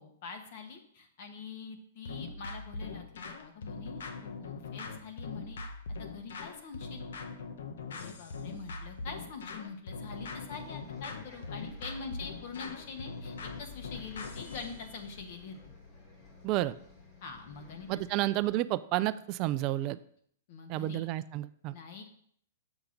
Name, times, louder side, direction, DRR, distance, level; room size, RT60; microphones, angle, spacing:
voice 1, 0.0-3.1 3.4-5.6 6.0-7.0 7.9-15.6 17.2-18.3 20.5-21.0 21.7-22.0, left 5 dB, 50° left, 5 dB, 1.2 m, -44 dB
sound 1, 2.1-14.7, left 4 dB, 80° left, 0.9 m, -41 dB
Bus, 10.1-18.5, left 3 dB, 25° left, 1.7 m, -51 dB
voice 2, 16.4-16.7 17.9-20.0 20.7-21.7, right 15 dB, 35° right, 14 dB, 0.3 m, -30 dB
6.9 x 5.8 x 3.8 m, 0.64 s
hypercardioid pair, 155°, 0 cm